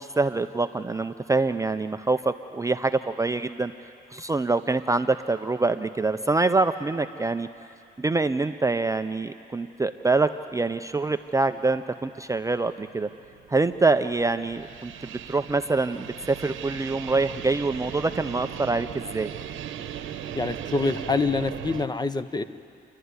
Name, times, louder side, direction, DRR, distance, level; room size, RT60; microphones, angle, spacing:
voice 1, 0.0-3.7 4.1-7.5 8.0-13.1 13.5-19.3, right 3 dB, 15° right, 9 dB, 0.5 m, -25 dB
sound 1, 12.7-21.9, right 9 dB, 80° right, 1.0 m, -38 dB
voice 2, 20.3-22.4, left 3 dB, 20° left, 12 dB, 0.8 m, -26 dB
28.5 x 11.5 x 9.6 m, 2.6 s
cardioid pair, 90°, 20 cm